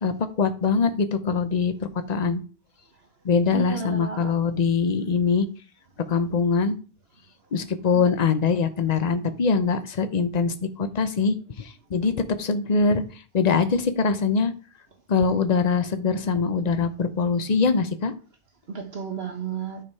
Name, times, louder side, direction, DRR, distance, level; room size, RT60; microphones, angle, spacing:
voice 1, 0.0-1.7 2.1-2.4 3.2-5.5 6.1-6.7 7.5-13.0 13.3-14.5 15.1-18.1, left 5 dB, 40° left, 10 dB, 0.9 m, -23 dB
voice 2, 3.5-4.4 7.9-8.0 18.7-19.8, right 6 dB, 65° right, 5 dB, 1.6 m, -32 dB
10.0 x 5.0 x 4.7 m, 0.37 s
omnidirectional pair, 1.2 m